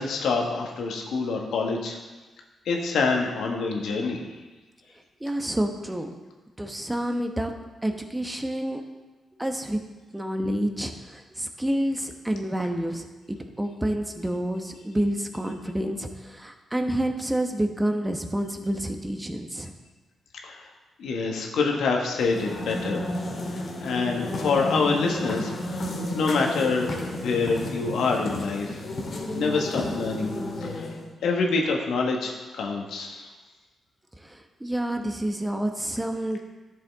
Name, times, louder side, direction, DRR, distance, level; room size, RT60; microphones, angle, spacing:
voice 1, 0.0-2.0 2.6-4.2 20.4-20.7 21.0-23.0 23.5-25.9 26.1-28.8 29.3-30.3 30.6-30.9 31.2-33.3, left 4 dB, 80° left, 1 dB, 1.3 m, -26 dB
voice 2, 5.2-6.1 6.6-7.5 7.8-8.8 9.4-9.8 10.1-13.1 13.6-19.7 34.2-36.4, right 1 dB, 15° right, 5 dB, 1.0 m, -28 dB
sound 1, 22.2-31.1, left 1 dB, 55° left, 1.8 m, -32 dB
11.0 x 6.9 x 3.6 m, 1.2 s
supercardioid pair, 55°, 0 cm